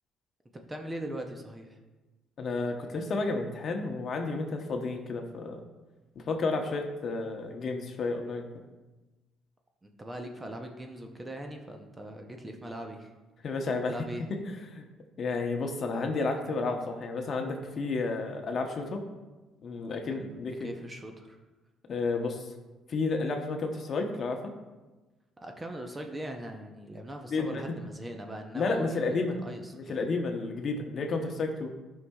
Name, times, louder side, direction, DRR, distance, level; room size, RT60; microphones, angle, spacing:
voice 1, 0.7-1.8 9.8-13.1 13.9-14.2 20.0-21.4 25.4-30.0, right 1 dB, 15° right, 3 dB, 0.7 m, -40 dB
voice 2, 2.4-5.6 6.3-8.5 13.4-13.9 14.3-14.8 15.2-19.0 19.6-20.7 21.9-22.5 22.9-24.4 27.3-27.8 28.5-29.4 29.7-31.7, left 3 dB, 45° left, 4 dB, 0.9 m, -31 dB
12.5 x 5.6 x 2.4 m, 1.2 s
cardioid pair, 110°, 0 cm